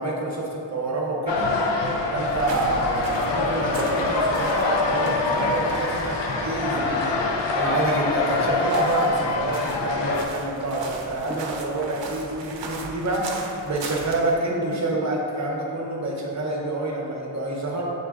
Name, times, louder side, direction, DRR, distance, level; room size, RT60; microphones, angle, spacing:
voice 1, 0.0-1.5 2.1-7.1 7.5-17.9, right 2 dB, 40° right, -2 dB, 0.7 m, -27 dB
sound 1, 1.3-10.2, left 3 dB, 75° left, 0.5 m, -25 dB
sound 2, 2.2-14.4, right 3 dB, 75° right, 0.6 m, -38 dB
Drawer open or close / Wood, 3.1-4.0 5.7-7.0 7.6-8.7 10.1-11.6, right 1 dB, 5° right, 0.5 m, -42 dB
6.4 x 2.4 x 3.5 m, 2.7 s
wide cardioid pair, 130°, 44 cm